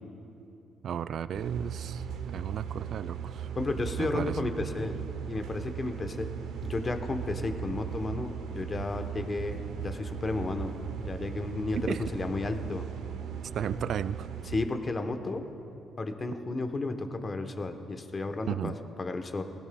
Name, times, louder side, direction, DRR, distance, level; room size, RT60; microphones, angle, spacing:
voice 1, 0.8-3.5 4.0-4.4 11.9-12.0 13.5-14.3 18.5-18.7, right 8 dB, 65° right, 15 dB, 0.3 m, -34 dB
sound 1, 1.3-14.6, right 8 dB, 85° right, 0.8 m, -38 dB
voice 2, 3.5-5.0 5.3-6.3 6.6-12.9 14.4-15.4 16.0-19.4, left 2 dB, 35° left, 6 dB, 1.0 m, -33 dB
18.5 x 16.0 x 2.3 m, 2.9 s
cardioid pair, 90°, 0 cm